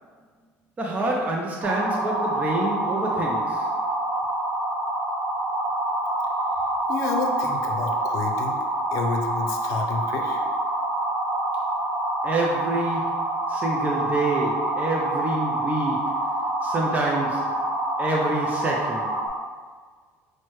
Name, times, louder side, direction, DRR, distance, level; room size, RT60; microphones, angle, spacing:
voice 1, 0.8-3.7 12.2-16.2 16.6-17.6 18.0-19.2, right 2 dB, 25° right, -1 dB, 0.5 m, -27 dB
sound 1, 1.6-19.3, right 1 dB, 65° right, 0.8 m, -26 dB
voice 2, 6.9-8.6 8.9-10.4, left 4 dB, 70° left, 3 dB, 0.5 m, -29 dB
6.1 x 2.2 x 3.1 m, 1.5 s
supercardioid pair, 100°, 6 cm